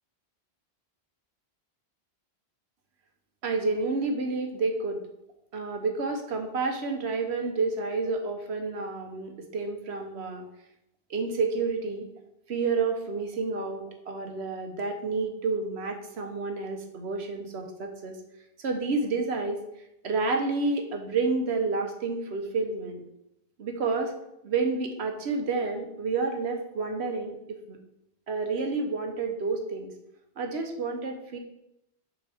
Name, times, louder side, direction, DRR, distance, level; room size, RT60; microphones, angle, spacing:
voice 1, 3.4-5.0 5.5-10.4 11.1-12.1 12.5-18.2 18.6-19.6 20.0-23.0 23.6-24.1 24.4-27.8 28.3-29.9 30.4-31.4, right 4 dB, 80° right, 4 dB, 1.2 m, -29 dB
7.1 x 4.8 x 3.5 m, 0.82 s
omnidirectional pair, 1.1 m